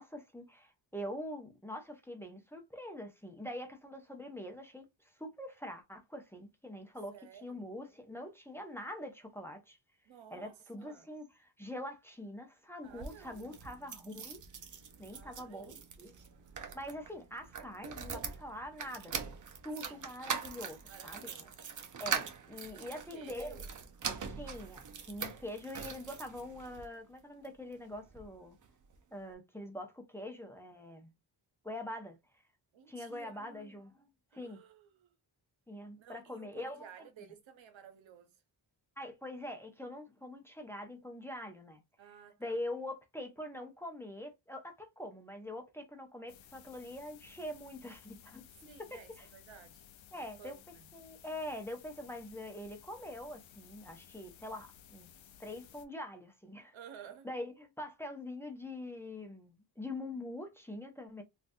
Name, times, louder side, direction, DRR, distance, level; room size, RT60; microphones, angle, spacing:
voice 1, 0.0-7.1 7.4-9.8 10.3-14.4 15.0-15.7 16.0-16.1 16.7-19.4 19.6-21.3 22.0-23.6 24.4-28.6 29.1-31.1 31.6-32.2 32.9-33.9 34.3-34.6 35.7-36.8 39.0-41.8 42.4-48.4 48.9-49.3 50.1-50.6 50.9-55.1 55.4-56.7 57.2-61.2, left 1 dB, 5° left, 0.7 m, -44 dB
voice 2, 7.1-7.6 10.0-11.1 12.8-13.6 15.1-15.9 19.8-20.0 20.9-21.5 22.8-23.6 32.7-33.8 34.3-35.2 36.0-38.4 42.0-42.6 48.6-50.9 56.7-57.3, right 8 dB, 85° right, 0.9 m, -54 dB
sound 1, 12.8-26.9 27.4-28.3 28.6-28.7 28.9-29.0, right 6 dB, 45° right, 0.6 m, -42 dB
sound 2, 46.3-55.8, left 9 dB, 85° left, 0.6 m, -58 dB
3.8 x 2.4 x 2.6 m
wide cardioid pair, 150°, 45 cm